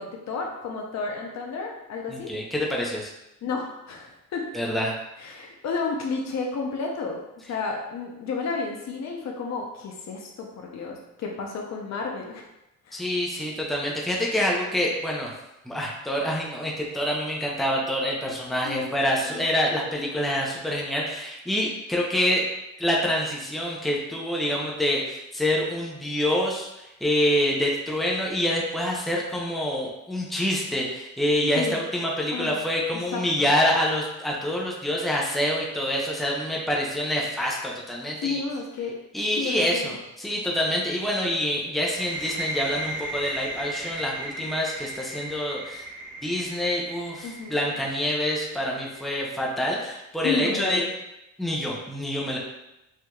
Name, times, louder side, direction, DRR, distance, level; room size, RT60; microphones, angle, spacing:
voice 1, 0.0-2.3 3.4-4.5 5.2-12.4 12.9-13.0 18.6-18.9 19.2-19.5 31.5-31.8 32.3-32.6 32.9-33.5 38.2-38.9 39.4-40.0 47.2-47.6 50.2-50.9, left 4 dB, 60° left, 0 dB, 0.8 m, -32 dB
voice 2, 2.1-3.1 4.5-4.9 12.9-15.3 15.7-22.4 22.8-38.4 39.1-45.8 46.2-50.8 51.4-52.4, equal, ahead, -3 dB, 0.7 m, -26 dB
sound 1, 41.8-49.4, right 1 dB, 30° right, 1.2 m, -36 dB
4.8 x 2.7 x 2.3 m, 0.91 s
cardioid pair, 90°, 30 cm